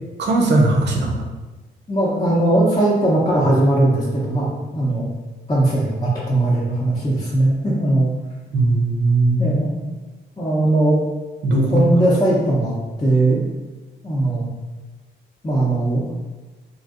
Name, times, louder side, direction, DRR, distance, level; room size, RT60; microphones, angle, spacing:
voice 1, 0.2-1.2 8.5-9.5 11.4-11.8, right 2 dB, 60° right, 1 dB, 0.6 m, -18 dB
voice 2, 1.9-5.1 5.5-8.1 9.4-9.9 10.4-11.0 11.7-12.7 13.0-13.5 14.0-14.5 15.4-16.0, right 1 dB, 20° left, -8 dB, 0.7 m, -19 dB
3.0 x 2.6 x 2.4 m, 1.2 s
cardioid pair, 90°, 20 cm